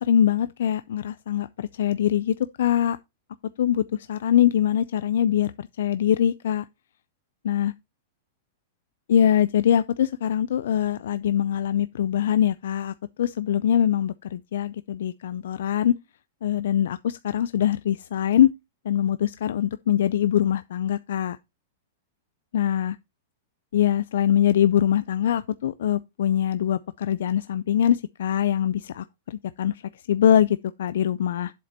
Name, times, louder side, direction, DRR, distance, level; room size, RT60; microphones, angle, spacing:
voice 1, 0.0-3.0 3.6-6.6 7.4-7.7 9.1-15.9 16.4-18.5 18.9-21.4 22.5-23.0 23.7-29.8 30.1-31.5, left 10 dB, 75° left, 0.4 m, -23 dB
7.7 x 6.6 x 4.3 m
supercardioid pair, 150°, 0 cm